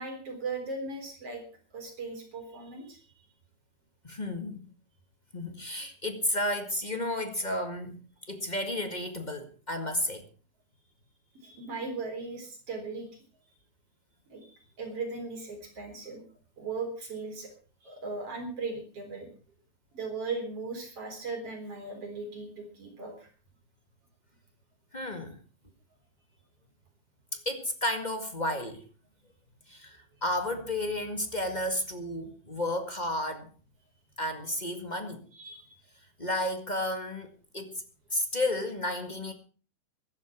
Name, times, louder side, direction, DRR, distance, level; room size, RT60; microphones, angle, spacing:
voice 1, 0.0-1.4 1.7-3.0 11.4-13.1 14.3-16.2 16.6-17.5 17.8-19.3 19.9-23.3 35.3-35.7, right 3 dB, 50° right, 4.8 m, -38 dB
voice 2, 4.0-4.6 5.3-10.2 24.9-25.4 27.3-28.8 29.7-33.5 34.2-35.2 36.2-37.8 38.1-39.3, left 1 dB, 20° left, 1.2 m, -32 dB
15.0 x 12.0 x 6.0 m
omnidirectional pair, 3.6 m